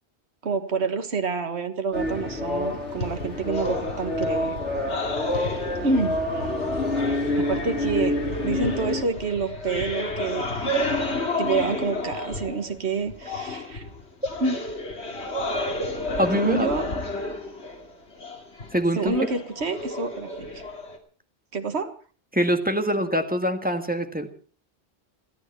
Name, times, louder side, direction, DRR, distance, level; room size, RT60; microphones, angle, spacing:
voice 1, 0.4-4.6 5.8-6.2 7.4-10.8 11.4-13.9 14.4-14.6 16.3-16.9 19.0-20.5 21.5-21.9, right 4 dB, 70° right, 7 dB, 1.8 m, -28 dB
mass athens, 1.9-9.0, left 1 dB, 85° left, 4.7 m, -27 dB
sound 1, 3.0-12.8 13.1-21.0, left 2 dB, 70° left, 2.7 m, -32 dB
voice 2, 16.2-16.7 18.7-19.1 22.3-24.3, equal, 10° right, 6 dB, 1.7 m, -24 dB
29.5 x 9.9 x 4.5 m, 0.40 s
omnidirectional pair, 1.2 m